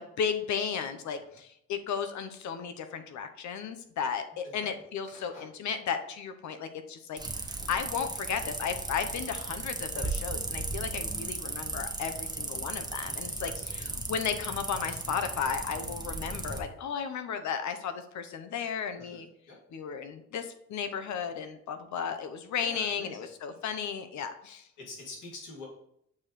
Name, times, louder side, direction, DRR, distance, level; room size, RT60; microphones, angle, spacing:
voice 1, 0.0-7.2 7.7-19.3 19.7-24.7, left 7 dB, 70° left, 8 dB, 0.9 m, -34 dB
voice 2, 4.4-4.7 5.1-5.5 13.4-13.9 19.0-19.2 19.5-19.6 22.6-23.6 24.8-25.7, left 3 dB, 90° left, -4 dB, 2.9 m, -46 dB
sound 1, 7.2-16.6, right 2 dB, 15° right, 1.0 m, -36 dB
8.4 x 4.9 x 3.2 m, 0.75 s
cardioid pair, 90°, 30 cm